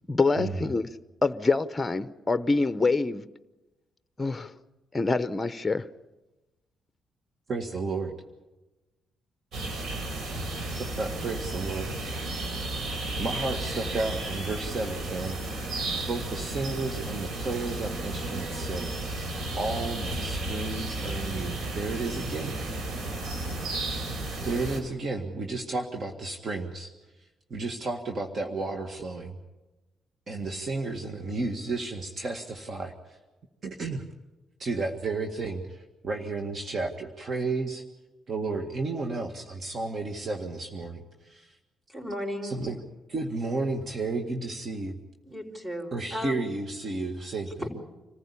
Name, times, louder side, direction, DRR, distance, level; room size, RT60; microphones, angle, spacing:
voice 1, 0.1-0.9 1.2-3.3 4.2-4.5 4.9-5.8, left 3 dB, 20° left, 13 dB, 0.8 m, -25 dB
voice 2, 7.5-8.1 10.3-10.6 11.0-11.9 13.2-15.4 16.1-18.9 19.6-22.6 24.4-26.9 27.5-29.4 30.3-33.2 33.6-34.0 34.6-37.8 38.3-41.6 42.4-42.8 43.1-45.0 45.9-47.5, right 3 dB, 45° right, 4 dB, 1.9 m, -32 dB
sound 1, 9.5-24.8, right 2 dB, 70° right, 4.2 m, -33 dB
voice 3, 41.9-42.7 45.2-46.4 47.5-47.7, equal, 20° right, 4 dB, 5.0 m, -35 dB
26.0 x 15.0 x 8.5 m, 1.1 s
cardioid pair, 90°, 0 cm